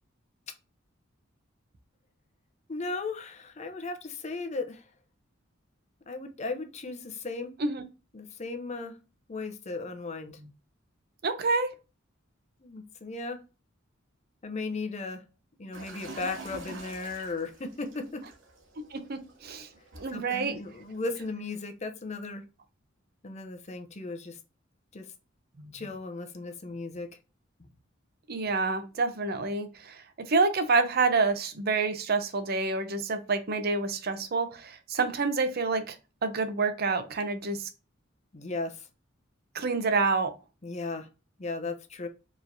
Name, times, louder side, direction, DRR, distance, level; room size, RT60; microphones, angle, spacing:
voice 1, 2.7-4.8 6.1-7.5 8.1-9.0 9.3-10.4 12.6-13.4 14.4-15.2 15.6-18.2 20.1-22.5 23.2-24.4 24.9-25.1 25.7-27.1 38.3-38.9 40.6-41.1 41.4-42.1, left 3 dB, 35° left, 6 dB, 0.6 m, -36 dB
voice 2, 11.2-11.7 18.9-19.7 20.0-20.6 28.3-36.0 36.2-37.7 39.5-40.3, right 4 dB, 50° right, 9 dB, 0.6 m, -28 dB
sound 1, 15.7-21.3, right 2 dB, 70° right, 1.1 m, -47 dB
4.7 x 3.1 x 2.6 m, 0.31 s
head